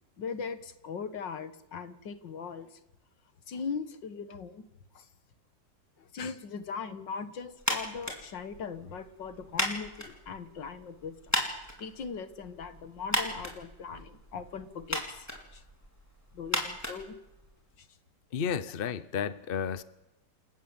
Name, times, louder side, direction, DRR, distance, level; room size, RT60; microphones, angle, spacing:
voice 1, 0.2-2.8 3.5-4.7 4.9-5.1 6.0-11.2 11.8-15.6 16.3-17.1 17.8-17.9, left 5 dB, 70° left, 2.2 m, -39 dB
sound 1, 7.6-17.8, equal, 10° left, 4.1 m, -37 dB
voice 2, 18.3-19.8, left 7 dB, 45° left, 0.8 m, -32 dB
29.0 x 13.5 x 8.9 m
omnidirectional pair, 2.0 m